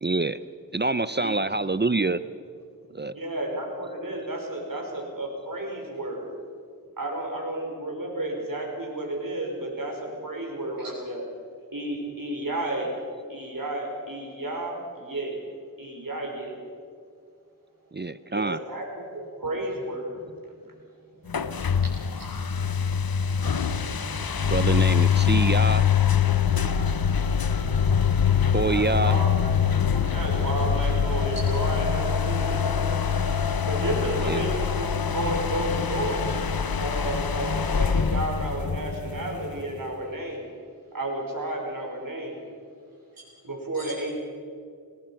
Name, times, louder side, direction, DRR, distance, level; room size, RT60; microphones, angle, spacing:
voice 1, 0.0-0.4 0.7-2.2 2.9-3.1 17.9-18.6 24.4-25.8 28.5-29.2 34.2-34.4, right 3 dB, 30° right, 14 dB, 0.6 m, -26 dB
voice 2, 2.9-6.3 7.0-11.2 11.7-13.0 13.3-15.4 15.8-16.6 18.3-20.2 26.5-26.9 28.7-29.5 30.1-33.0 33.6-36.3 36.8-40.5 40.9-42.4 43.4-44.2, right 1 dB, 70° right, 1 dB, 5.3 m, -32 dB
sound 1, 21.3-39.8, left 7 dB, 80° left, 0.9 m, -24 dB
voice 3, 21.8-22.3 29.9-30.0 32.7-33.5 43.7-43.9, right 1 dB, 85° right, -7 dB, 6.0 m, -43 dB
27.5 x 19.5 x 5.9 m, 2.3 s
wide cardioid pair, 50°, 35 cm